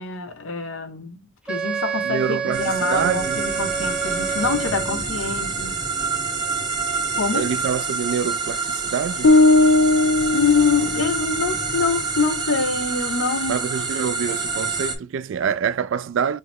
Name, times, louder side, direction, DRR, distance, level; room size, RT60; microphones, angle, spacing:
voice 1, 0.0-5.8 7.1-7.5 10.3-13.7, left 5 dB, 90° left, 1.0 m, -25 dB
Wind instrument woodwind instrument, 1.5-5.0, right 7 dB, 5° right, 0.5 m, -28 dB
voice 2, 2.0-3.4 7.3-9.3 13.5-16.4, right 7 dB, 65° right, 0.3 m, -26 dB
sound 1, 2.5-15.0, right 4 dB, 20° right, 0.8 m, -27 dB
sound 2, 9.2-11.4, left 2 dB, 65° left, 0.8 m, -17 dB
5.6 x 2.0 x 3.5 m
head